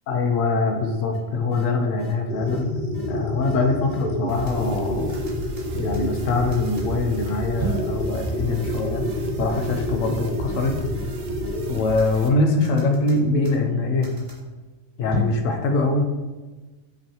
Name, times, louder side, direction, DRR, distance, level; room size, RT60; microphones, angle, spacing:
voice 1, 0.1-2.8 3.1-5.2 5.7-9.1 9.4-10.7 11.7-14.1 15.0-16.0, left 3 dB, 75° left, 3 dB, 1.0 m, -23 dB
sound 1, 1.1-1.2 1.5-1.6 2.0-2.1 2.5-2.6 2.9-3.1 3.4-3.5 3.9-4.7 5.1-6.9 7.6-7.9 8.2-8.3 8.5-8.7 9.0-9.2 9.5-9.6 10.0-10.1 10.5-10.6 10.9-11.1 11.4-12.2 12.6-14.4 15.1-15.4, right 3 dB, 45° right, 1.2 m, -33 dB
sound 2, 2.3-11.7, left 1 dB, 50° left, 0.6 m, -29 dB
sound 3, 4.3-12.3, right 2 dB, 65° right, 0.7 m, -36 dB
5.3 x 3.2 x 2.9 m, 1.2 s
omnidirectional pair, 1.4 m